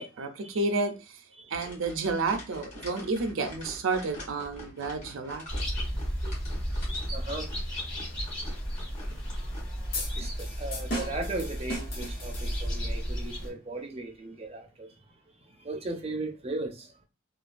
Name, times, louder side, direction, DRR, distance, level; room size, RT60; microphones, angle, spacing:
voice 1, 0.0-1.2 1.5-5.7, right 3 dB, 75° right, 0.5 m, -31 dB
voice 2, 1.4-1.7 6.2-6.3 7.1-7.5 10.2-14.9 15.6-16.9, right 2 dB, 30° right, 0.5 m, -37 dB
sound 1, 1.5-9.6, left 1 dB, 35° left, 1.4 m, -46 dB
sound 2, 5.5-13.5, equal, 65° left, 1.5 m, -33 dB
sound 3, 9.9-13.0, left 1 dB, 50° left, 0.9 m, -37 dB
3.0 x 2.3 x 2.4 m
head